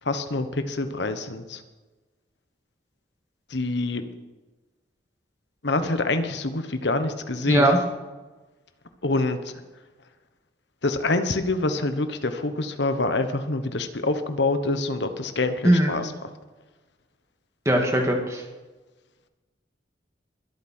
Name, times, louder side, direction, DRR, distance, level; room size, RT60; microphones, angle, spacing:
voice 1, 0.0-1.6 3.5-4.0 5.6-7.8 9.0-9.6 10.8-16.3, left 2 dB, 65° left, 8 dB, 1.2 m, -26 dB
voice 2, 7.5-7.8 15.6-15.9 17.7-18.4, right 1 dB, 15° right, 1 dB, 2.1 m, -20 dB
22.0 x 8.6 x 4.5 m, 1.2 s
head